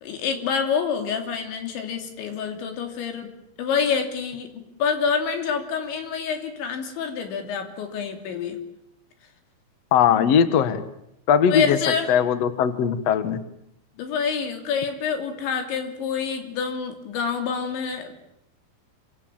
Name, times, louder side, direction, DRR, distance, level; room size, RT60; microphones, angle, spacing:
voice 1, 0.0-3.3 3.6-8.6 10.2-10.3 11.5-12.1 14.0-18.1, left 6 dB, 70° left, 5 dB, 5.2 m, -27 dB
voice 2, 9.9-10.8 11.3-11.8 12.1-13.4, left 8 dB, 85° left, 11 dB, 1.4 m, -19 dB
27.5 x 26.0 x 7.6 m, 0.78 s
omnidirectional pair, 5.5 m